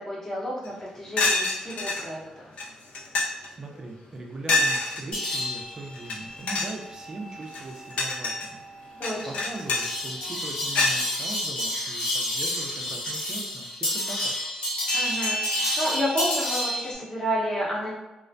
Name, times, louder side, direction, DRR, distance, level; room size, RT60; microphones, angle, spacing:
voice 1, 0.1-2.5 9.0-9.4 14.9-17.9, equal, 20° left, -6 dB, 0.7 m, -30 dB
sound 1, 0.7-0.8 1.2-2.0 2.6-2.7 2.9-3.5 4.5-5.0 6.0-6.2 6.4-6.8 7.4-8.5 9.0-9.9 10.7-11.0, left 2 dB, 70° left, 0.4 m, -25 dB
voice 2, 3.6-8.6 8.9-14.4, right 2 dB, 30° right, 1 dB, 0.3 m, -40 dB
sound 2, 5.1-16.9, left 1 dB, 50° left, 0.8 m, -30 dB
2.4 x 2.1 x 2.5 m, 1.0 s
wide cardioid pair, 165°, 2 cm